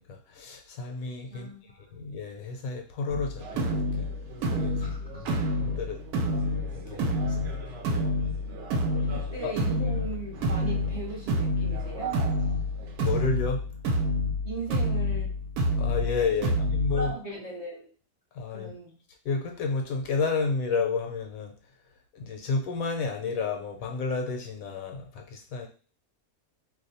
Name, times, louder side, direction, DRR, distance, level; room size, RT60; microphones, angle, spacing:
voice 1, 0.0-1.5 1.8-4.1 4.6-5.3 5.6-6.0 6.7-7.6 9.4-9.5 13.0-13.7 15.8-17.1 18.3-18.7 19.2-21.5 22.1-25.7, left 4 dB, 75° left, 1.0 m, -31 dB
voice 2, 1.3-1.9 4.8-5.4 9.1-12.2 14.4-15.4 16.4-16.5 16.9-17.9 18.5-19.0, right 2 dB, 35° right, 0.6 m, -38 dB
sound 1, 3.1-17.1, left 1 dB, 90° right, 1.1 m, -28 dB
sound 2, 3.4-13.3, right 6 dB, 65° right, 0.8 m, -44 dB
2.6 x 2.2 x 4.0 m
omnidirectional pair, 1.5 m